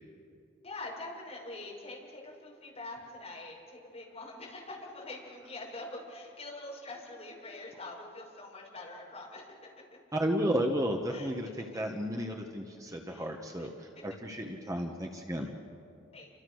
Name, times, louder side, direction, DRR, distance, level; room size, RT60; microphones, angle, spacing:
voice 1, 0.6-10.0 11.1-11.8 13.1-13.3 13.6-13.7 13.9-14.0 15.4-15.5 16.1-16.3, left 2 dB, 35° left, -2 dB, 6.3 m, -45 dB
voice 2, 10.1-15.5, equal, 15° right, 2 dB, 1.3 m, -33 dB
29.0 x 26.0 x 6.4 m, 2.5 s
head